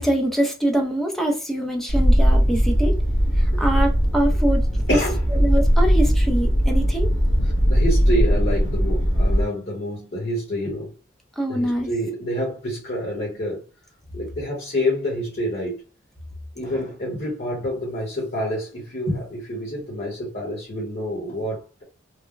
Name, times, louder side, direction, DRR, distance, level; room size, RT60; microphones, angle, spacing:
voice 1, 0.0-3.0 3.4-5.0 5.3-7.1 11.4-11.9, right 1 dB, ahead, 0.5 m, -24 dB
sound 1, 1.9-9.4, equal, 80° left, 0.9 m, -19 dB
voice 2, 4.9-5.2 7.7-10.9 11.5-13.6 14.1-15.8 16.6-21.8, equal, 50° left, 1.0 m, -27 dB
3.2 x 2.1 x 2.4 m
head